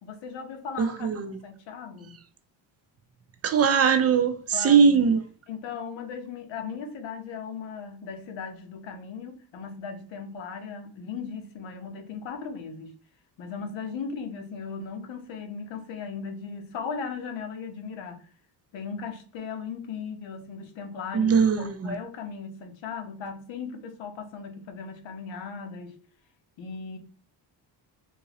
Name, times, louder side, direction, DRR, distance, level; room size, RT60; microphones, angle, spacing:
voice 1, 0.0-1.1 1.4-2.1 4.5-5.1 5.5-12.9 13.4-18.3 18.7-25.9 26.6-27.0, left 5 dB, 75° left, 1.0 m, -37 dB
voice 2, 0.8-1.4 3.4-5.2 21.1-21.9, right 6 dB, 35° right, 0.4 m, -21 dB
3.7 x 2.8 x 2.8 m
cardioid pair, 140°, 45 cm